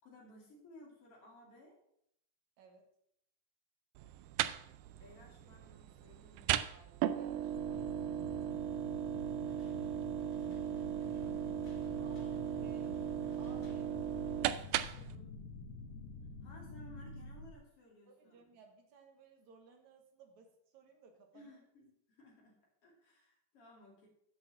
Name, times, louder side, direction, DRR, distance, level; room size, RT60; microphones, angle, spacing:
voice 1, 0.0-1.8 5.0-6.6 12.0-12.8 14.9-15.3 16.4-18.4 21.3-22.6 22.8-24.1, left 1 dB, 40° left, -1 dB, 3.1 m, -59 dB
voice 2, 2.6-2.9 6.7-8.1 12.0-13.0 13.4-14.0 14.4-14.9 18.1-21.5, right 5 dB, 60° right, 3 dB, 2.2 m, -60 dB
sound 1, 4.0-15.2, right 11 dB, 90° right, 2.0 m, -37 dB
sound 2, 7.5-17.5, left 3 dB, 85° left, 3.1 m, -48 dB
sound 3, 9.5-14.7, left 5 dB, 65° left, 1.5 m, -64 dB
8.6 x 6.2 x 7.2 m, 0.73 s
omnidirectional pair, 4.6 m